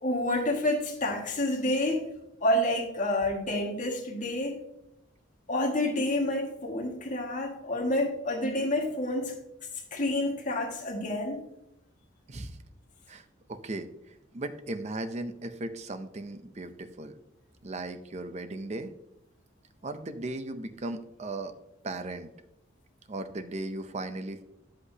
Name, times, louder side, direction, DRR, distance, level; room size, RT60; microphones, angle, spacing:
voice 1, 0.0-2.0 2.4-4.6 5.5-9.4 9.9-11.4, left 1 dB, 40° left, 0 dB, 1.7 m, -28 dB
voice 2, 13.5-13.9 14.3-17.1 17.6-18.9 19.8-21.5 21.8-22.3 23.1-24.4, right 2 dB, 35° right, 9 dB, 0.6 m, -36 dB
10.0 x 8.2 x 2.8 m, 0.85 s
head